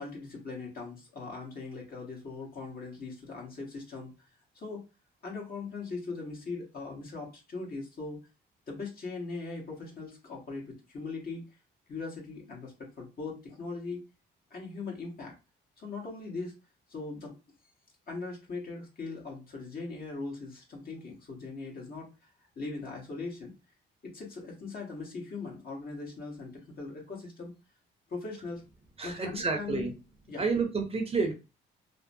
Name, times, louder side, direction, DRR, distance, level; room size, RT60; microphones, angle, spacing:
voice 1, 0.0-4.1 4.5-4.8 5.2-8.2 8.7-11.4 11.9-14.0 14.5-15.3 15.8-16.6 16.9-17.4 18.1-22.1 22.6-23.5 24.0-27.5 28.1-28.6 29.0-29.9 30.3-30.4, left 3 dB, 50° left, -2 dB, 1.3 m, -40 dB
voice 2, 29.0-29.9 30.4-31.3, right 4 dB, 30° right, 3 dB, 0.6 m, -29 dB
2.9 x 2.0 x 2.6 m, 0.29 s
cardioid pair, 90°, 20 cm